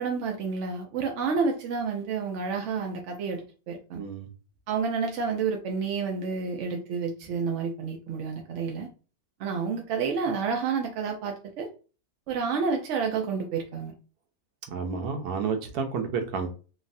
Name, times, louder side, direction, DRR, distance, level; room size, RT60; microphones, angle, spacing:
voice 1, 0.0-4.0 4.7-8.9 9.4-11.7 12.3-13.9, right 5 dB, 65° right, 2 dB, 0.7 m, -29 dB
voice 2, 3.9-4.3 14.7-16.5, right 5 dB, 85° right, 5 dB, 1.2 m, -30 dB
3.1 x 2.4 x 2.6 m, 0.35 s
omnidirectional pair, 1.6 m